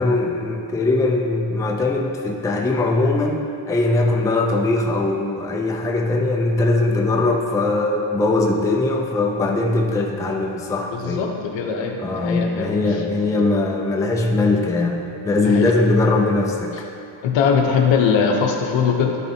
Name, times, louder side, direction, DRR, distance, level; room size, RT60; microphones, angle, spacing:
voice 1, 0.0-11.3 12.0-16.8, left 2 dB, 10° left, 1 dB, 0.3 m, -20 dB
voice 2, 10.9-12.7 15.4-15.7 17.2-19.2, left 6 dB, 80° left, 2 dB, 0.9 m, -21 dB
11.0 x 4.2 x 2.8 m, 2.8 s
cardioid pair, 135°, 45 cm